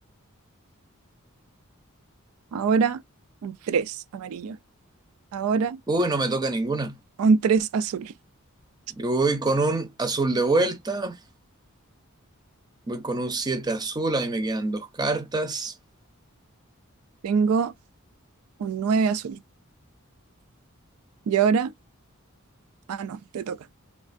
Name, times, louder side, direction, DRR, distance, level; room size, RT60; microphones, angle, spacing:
voice 1, 2.5-3.0 3.4-4.6 5.3-5.8 7.2-8.1 17.2-17.7 18.6-19.4 21.3-21.7 22.9-23.6, right 5 dB, 80° right, 0.3 m, -24 dB
voice 2, 5.9-7.0 9.0-11.2 12.9-15.7, right 2 dB, 20° right, 0.5 m, -25 dB
3.3 x 2.3 x 2.5 m
head